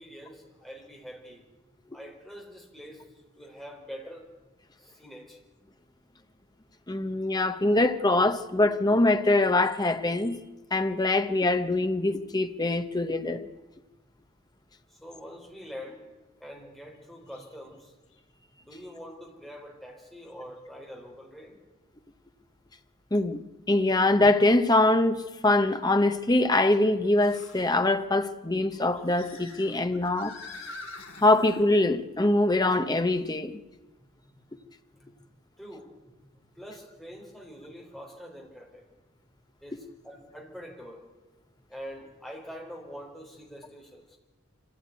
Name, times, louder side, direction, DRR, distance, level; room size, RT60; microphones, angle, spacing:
voice 1, 0.0-1.5 1.9-4.3 4.8-5.4 14.9-16.0 16.4-17.9 18.6-21.6 34.2-34.4 34.9-35.1 35.6-36.1 36.5-38.9 39.6-41.0 41.7-44.2, equal, ahead, 4.0 m, -45 dB
voice 2, 6.9-10.4 10.7-13.5 23.1-30.4 31.2-33.6 39.7-39.8, left 2 dB, 20° left, 1.0 m, -23 dB
sound 1, 17.3-17.5 18.1-18.2 20.3-20.4 23.9-24.0 27.2-27.7 28.7-31.6, left 3 dB, 60° left, 3.8 m, -45 dB
25.0 x 15.5 x 9.4 m
head